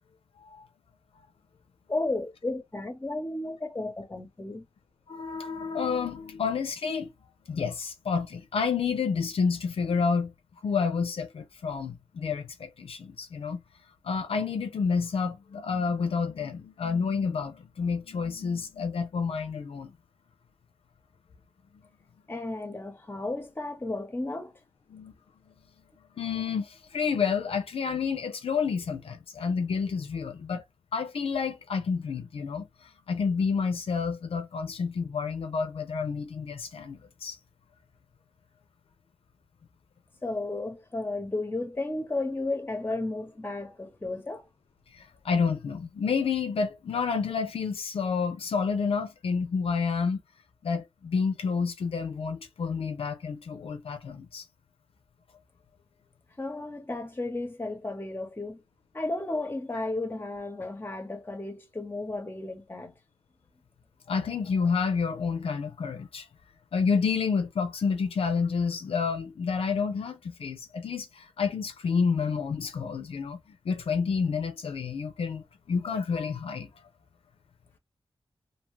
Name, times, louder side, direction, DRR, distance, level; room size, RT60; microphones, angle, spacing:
voice 1, 1.9-4.6 22.3-24.6 40.2-44.5 56.4-58.6 58.9-62.9, left 2 dB, 25° left, 0.7 m, -33 dB
voice 2, 5.1-7.1 7.5-10.3 10.6-13.6 14.0-19.9 24.9-25.1 26.2-30.6 30.9-32.7 33.1-37.4 44.9-50.2 50.6-54.4 64.1-66.3 66.7-73.4 73.6-76.7, left 5 dB, 85° left, 0.4 m, -29 dB
2.6 x 2.2 x 3.0 m
wide cardioid pair, 65°, 9 cm